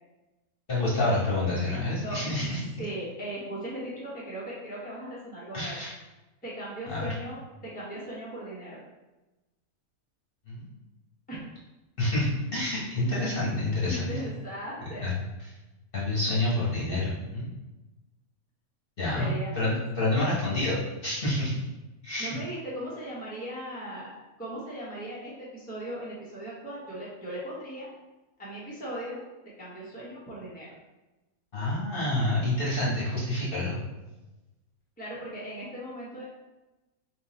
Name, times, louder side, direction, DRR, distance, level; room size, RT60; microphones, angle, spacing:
voice 1, 0.7-2.6 5.5-5.9 6.9-7.1 10.5-10.7 12.0-14.1 15.0-15.1 15.9-17.5 19.0-19.3 19.6-21.6 22.0-22.4 31.5-33.8, left 2 dB, 40° left, -7 dB, 1.2 m, -28 dB
voice 2, 2.8-5.8 6.4-8.8 11.3-11.4 13.8-15.1 19.1-19.5 22.2-24.1 24.4-27.9 28.4-29.2 29.4-30.7 35.0-36.3, right 1 dB, 5° left, -7 dB, 0.9 m, -38 dB
3.8 x 2.7 x 4.2 m, 1.1 s
omnidirectional pair, 1.5 m